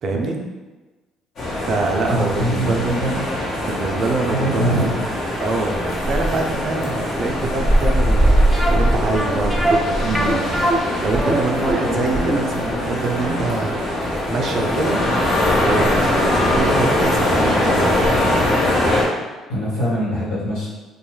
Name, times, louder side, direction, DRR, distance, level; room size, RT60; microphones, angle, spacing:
voice 1, 0.0-0.4 1.6-3.0 3.6-4.9 5.4-13.9 14.3-15.0 15.6-18.4, right 3 dB, 55° right, 2 dB, 0.5 m, -25 dB
sound 1, 1.4-19.0, equal, 60° left, 0.9 m, -21 dB
voice 2, 2.0-3.2 4.3-5.0 19.5-20.7, equal, 85° left, -8 dB, 1.2 m, -23 dB
sound 2, 8.5-15.4 15.7-15.8 16.3-16.5 16.7-16.8, right 1 dB, 5° left, 0.5 m, -24 dB
2.5 x 2.3 x 3.2 m, 1.2 s
supercardioid pair, 75°, 0 cm